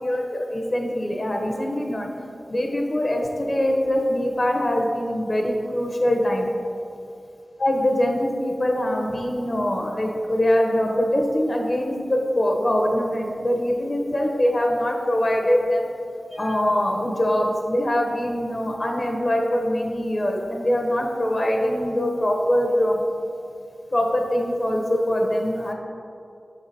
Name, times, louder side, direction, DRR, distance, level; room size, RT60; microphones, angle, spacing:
voice 1, 0.0-2.1 2.5-6.5 7.6-15.9 16.3-23.0 23.9-25.7, left 1 dB, 45° left, 1 dB, 1.1 m, -23 dB
6.8 x 4.9 x 4.3 m, 2.5 s
wide cardioid pair, 55°, 0 cm